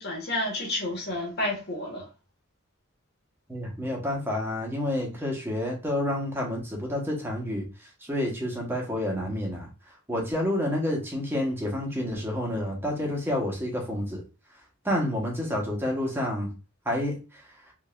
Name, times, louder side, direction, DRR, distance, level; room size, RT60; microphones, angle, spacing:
voice 1, 0.0-2.1, left 1 dB, 50° left, 1.3 m, -30 dB
voice 2, 3.5-9.7 10.1-14.2 14.8-16.5 16.8-17.4, left 1 dB, 10° right, 1.1 m, -29 dB
3.5 x 3.4 x 2.5 m
head